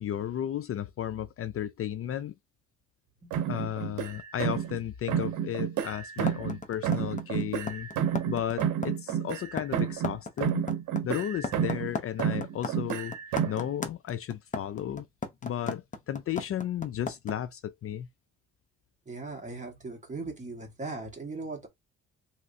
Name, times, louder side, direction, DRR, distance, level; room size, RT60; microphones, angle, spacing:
voice 1, 0.0-2.3 3.5-7.9 8.3-10.6 11.0-13.1 13.5-15.1 15.4-18.1, left 11 dB, 50° left, 0.4 m, -34 dB
sound 1, 3.3-4.8 5.1-6.6 6.8-10.2 10.4-11.9 12.2-13.7, right 9 dB, 90° right, 0.7 m, -30 dB
sound 2, 6.3-17.3, left 4 dB, 25° left, 0.9 m, -35 dB
voice 2, 19.1-21.7, right 3 dB, 25° right, 1.6 m, -39 dB
3.1 x 3.0 x 2.7 m
cardioid pair, 90°, 30 cm